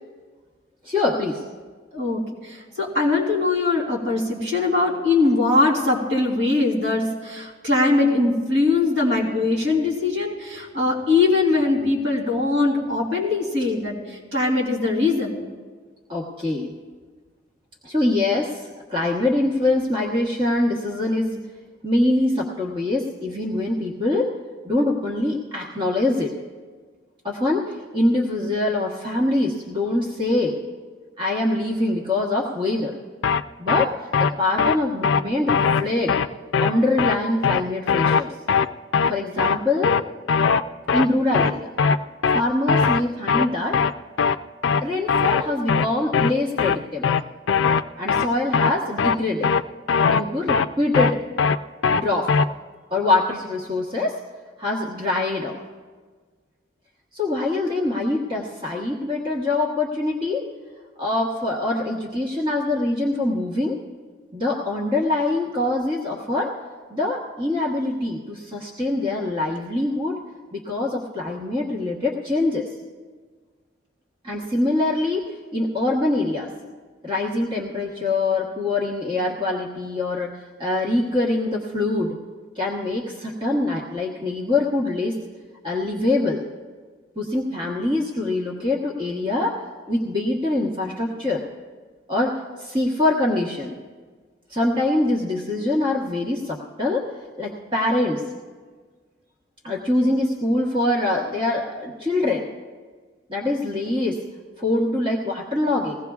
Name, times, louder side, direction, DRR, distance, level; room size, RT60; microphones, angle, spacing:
voice 1, 0.8-1.4 13.6-13.7 16.1-16.7 17.8-21.4 21.8-24.3 24.6-26.3 27.2-30.6 31.2-32.9 33.6-36.1 36.6-38.4 39.1-40.0 40.9-41.7 42.3-43.8 44.8-47.2 48.0-49.5 50.0-51.2 51.9-52.3 52.9-54.2 54.6-55.6 57.1-60.4 61.0-63.8 64.3-66.5 66.9-70.2 70.5-72.7 74.2-76.5 77.0-82.2 82.5-85.2 85.6-86.4 87.2-89.6 89.9-91.4 92.1-93.8 94.5-97.1 97.4-98.2 99.6-102.5 103.3-104.2 104.6-106.0, left 2 dB, 25° right, -3 dB, 1.2 m, -24 dB
voice 2, 1.9-15.4, left 3 dB, 70° right, -2 dB, 3.3 m, -21 dB
sound 1, 33.2-33.4 33.7-33.9 34.1-34.3 34.6-34.8 35.0-35.2 35.5-35.8 36.1-36.3 36.5-36.7 37.0-37.2 37.4-37.6 37.9-38.2 38.5-38.7 38.9-39.1 39.4-39.6 39.8-40.0 40.3-40.6 40.9-41.1 41.3-41.5 41.8-42.0 42.2-42.4 42.7-43.0 43.3-43.5 43.7-43.9 44.2-44.4 44.6-44.8 45.1-45.4 45.7-45.9 46.1-46.3 46.6-46.8 47.0-47.2 47.5-47.8 48.1-48.3 48.5-48.7 49.0-49.2 49.4-49.6 49.9-50.2 50.5-50.7 50.9-51.1 51.4-51.6 51.8-52.0 52.3-52.4, left 6 dB, 75° left, 0.4 m, -19 dB
20.5 x 16.5 x 2.4 m, 1.5 s
head